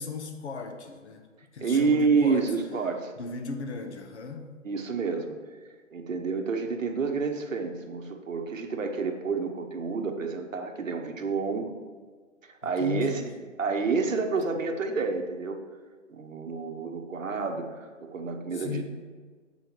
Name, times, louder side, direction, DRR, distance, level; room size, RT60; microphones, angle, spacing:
voice 1, 0.0-2.5 3.2-4.6 12.6-13.3 18.5-18.8, left 4 dB, 55° left, 6 dB, 1.1 m, -36 dB
voice 2, 1.6-3.1 4.6-5.4 5.9-11.7 12.4-13.3 13.6-15.6 16.1-18.8, right 4 dB, 75° right, 5 dB, 1.2 m, -29 dB
8.1 x 5.7 x 4.6 m, 1.5 s
hypercardioid pair, 155°, 40 cm